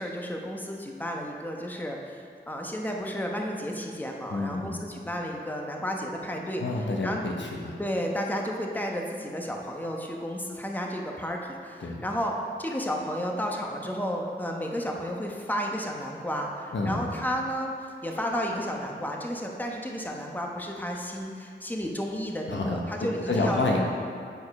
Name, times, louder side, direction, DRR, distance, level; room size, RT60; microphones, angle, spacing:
voice 1, 0.0-2.0 2.5-7.2 7.8-12.3 12.6-17.7 18.0-23.6, equal, 10° left, 0 dB, 1.1 m, -32 dB
voice 2, 4.3-4.8 6.6-7.8 11.8-12.1 16.7-17.1 22.5-23.8, left 2 dB, 75° left, -1 dB, 1.1 m, -29 dB
9.2 x 4.8 x 5.3 m, 2.3 s
cardioid pair, 50°, 19 cm